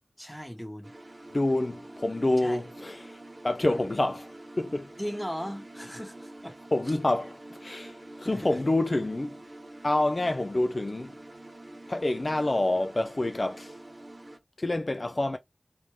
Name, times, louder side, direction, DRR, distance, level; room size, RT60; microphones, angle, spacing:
voice 1, 0.2-0.9 2.4-2.6 5.0-6.6 8.2-8.6, equal, 5° left, 1.1 m, -37 dB
sound 1, 0.8-14.4, right 1 dB, 50° right, 0.7 m, -47 dB
voice 2, 1.3-5.0 6.7-9.4 9.8-11.2 11.9-13.8 14.6-15.4, left 2 dB, 50° left, 0.3 m, -28 dB
3.3 x 2.6 x 3.1 m
wide cardioid pair, 50°, 0 cm